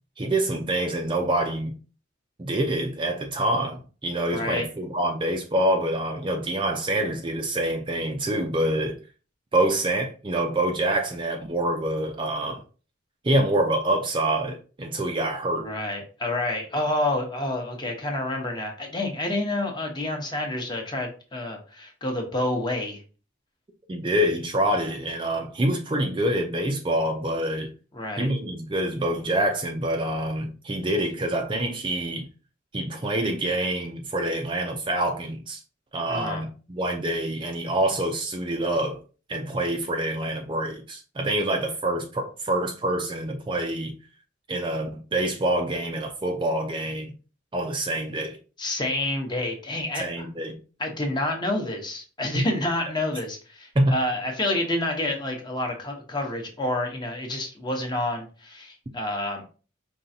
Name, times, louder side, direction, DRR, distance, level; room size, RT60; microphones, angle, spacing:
voice 1, 0.2-1.7 2.4-9.0 9.5-12.6 13.2-15.7 23.9-27.7 28.2-32.3 32.7-35.6 35.9-39.0 39.3-43.9 44.5-47.1 47.5-48.4 50.0-50.6 52.3-52.4 53.8-53.9, right 1 dB, 25° right, 0.4 m, -26 dB
voice 2, 4.3-4.7 15.6-23.0 27.9-28.3 36.1-36.4 48.6-50.3 50.8-59.5, left 1 dB, 20° left, 0.9 m, -28 dB
5.3 x 3.3 x 2.7 m
head